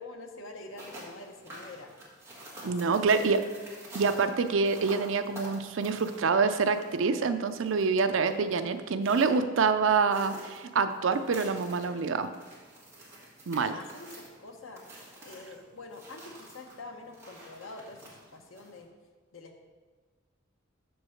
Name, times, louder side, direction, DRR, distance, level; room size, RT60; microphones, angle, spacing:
voice 1, 0.0-2.0 2.6-3.1 13.6-14.8 15.2-18.9 19.3-19.6, left 2 dB, 80° left, 4 dB, 0.9 m, -46 dB
sound 1, 0.6-18.8, right 1 dB, 15° right, 1.6 m, -49 dB
voice 2, 2.6-3.4 3.9-12.3 13.5-13.7, right 5 dB, 70° right, 10 dB, 0.5 m, -26 dB
6.2 x 4.7 x 6.4 m, 1.4 s
head